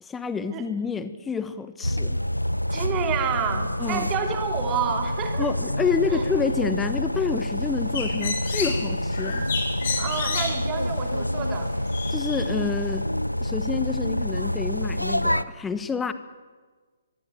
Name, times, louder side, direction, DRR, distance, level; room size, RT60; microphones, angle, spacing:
voice 1, 0.0-2.2 3.8-4.1 5.4-9.5 12.1-13.1 13.4-16.1, left 5 dB, 10° left, 12 dB, 1.3 m, -28 dB
sound 1, 1.8-15.4, left 1 dB, 90° left, 0.8 m, -27 dB
voice 2, 2.7-5.7 6.1-6.2 10.0-11.7, right 7 dB, 20° right, 4 dB, 3.1 m, -29 dB
Bird, 7.5-12.9, left 4 dB, 45° left, 5.9 m, -33 dB
23.5 x 22.5 x 7.8 m, 1.4 s
figure-of-eight pair, 130°, 0 cm